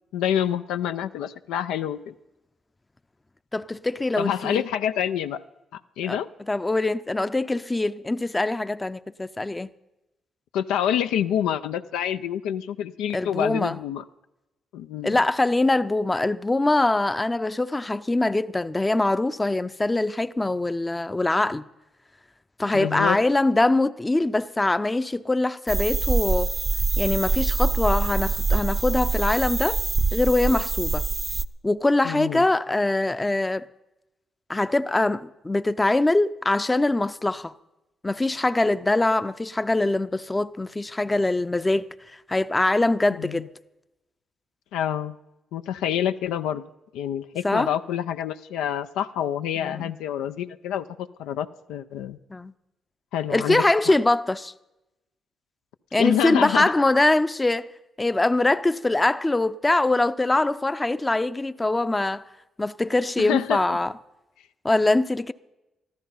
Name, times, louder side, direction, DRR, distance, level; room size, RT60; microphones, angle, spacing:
voice 1, 0.1-2.1 4.2-5.4 5.7-6.3 10.5-14.0 14.7-15.2 22.7-23.2 32.0-32.4 43.2-43.4 44.7-45.2 45.5-46.6 46.9-52.2 53.1-53.6 56.0-56.7 63.2-63.8, left 10 dB, 85° left, 0.4 m, -27 dB
voice 2, 3.5-4.6 6.1-6.2 6.5-9.7 13.1-13.8 15.0-21.7 22.6-26.5 27.0-29.8 30.1-31.1 31.6-33.7 34.5-37.5 38.0-41.9 42.3-43.5 47.4-47.7 49.6-49.9 52.3-52.5 53.3-54.5 55.9-57.7 58.0-62.2 62.6-63.9 64.6-65.3, left 2 dB, 20° left, 0.6 m, -23 dB
sound 1, 25.7-31.5, right 4 dB, 30° right, 0.5 m, -24 dB
13.5 x 12.5 x 5.5 m
supercardioid pair, 55°, 0 cm